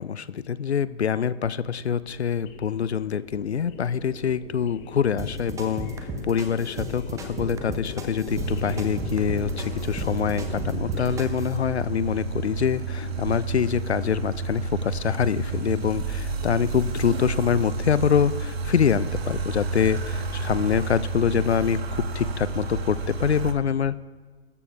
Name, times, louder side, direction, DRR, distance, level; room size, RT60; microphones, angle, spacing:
voice 1, 0.0-5.9 6.2-24.2, left 7 dB, 80° left, 17 dB, 0.6 m, -25 dB
sound 1, 1.4-11.2, left 5 dB, 30° left, 1.2 m, -41 dB
sound 2, 5.2-11.6, right 1 dB, 10° right, 0.9 m, -35 dB
sound 3, 8.3-23.5, right 3 dB, 65° right, 1.4 m, -31 dB
23.5 x 14.0 x 2.5 m, 1.5 s
figure-of-eight pair, 120°, 32 cm